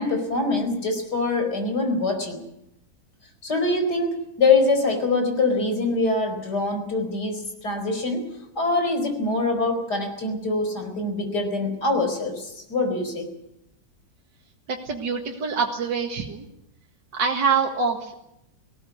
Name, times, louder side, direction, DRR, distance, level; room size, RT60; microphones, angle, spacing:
voice 1, 0.0-2.4 3.4-8.3 8.6-13.2, left 3 dB, 60° left, 5 dB, 5.3 m, -24 dB
voice 2, 14.7-16.5 17.1-18.1, right 5 dB, 70° right, 1 dB, 2.5 m, -25 dB
19.5 x 17.5 x 9.5 m, 0.83 s
omnidirectional pair, 2.0 m